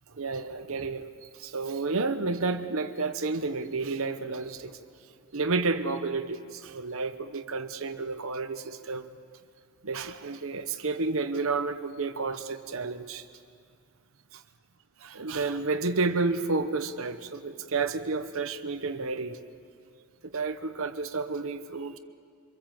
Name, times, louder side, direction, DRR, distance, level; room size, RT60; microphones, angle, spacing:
voice 1, 0.1-1.1 1.3-4.8 5.3-9.1 9.8-13.2 14.3-14.4 15.0-19.4 20.2-22.0, right 3 dB, 65° right, 8 dB, 1.0 m, -31 dB
25.0 x 22.5 x 7.6 m, 2.2 s
head